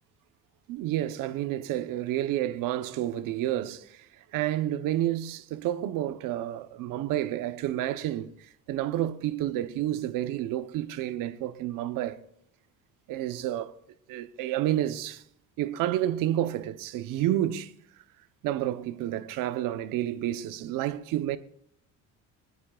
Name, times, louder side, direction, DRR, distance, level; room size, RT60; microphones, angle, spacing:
voice 1, 0.7-4.1 4.3-12.2 13.1-13.7 14.1-15.2 15.6-17.7 18.4-21.4, right 13 dB, 70° right, 0.9 m, -30 dB
24.5 x 9.4 x 2.4 m
cardioid pair, 135°, 34 cm